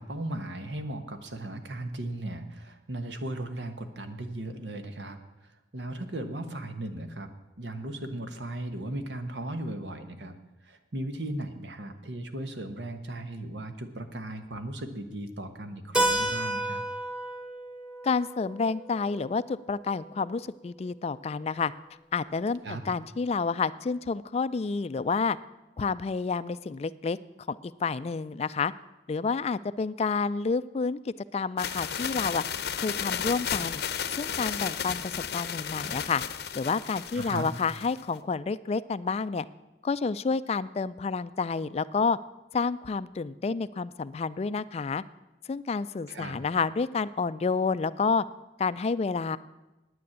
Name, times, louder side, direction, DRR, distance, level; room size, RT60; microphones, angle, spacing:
voice 1, 0.0-7.3 7.6-10.3 10.6-16.8 22.6-22.8 37.1-37.5 46.1-46.4, right 1 dB, 80° right, 8 dB, 1.2 m, -37 dB
Keyboard (musical), 15.9-20.4, right 1 dB, 5° right, 1.3 m, -32 dB
voice 2, 18.0-21.7 22.1-25.4 25.8-27.2 27.5-28.7 29.1-32.4 32.8-33.8 34.1-36.2 36.5-39.4 39.8-42.2 42.5-45.0 45.5-48.2 48.6-49.4, left 4 dB, 35° left, 16 dB, 0.3 m, -29 dB
sound 1, 31.6-38.0, left 8 dB, 60° left, 0.7 m, -33 dB
9.6 x 9.4 x 8.6 m, 1.0 s
head